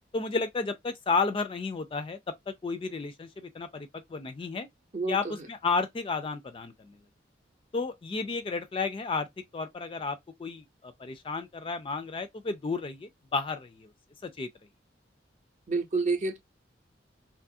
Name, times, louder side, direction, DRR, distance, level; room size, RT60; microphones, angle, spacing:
voice 1, 0.1-2.2 2.5-4.7 5.1-7.0 7.7-9.3 9.5-13.9 14.2-14.5, left 4 dB, 30° left, 0.3 m, -32 dB
voice 2, 4.9-5.4 15.7-16.4, right 3 dB, 40° right, 0.6 m, -29 dB
2.9 x 2.4 x 2.6 m
head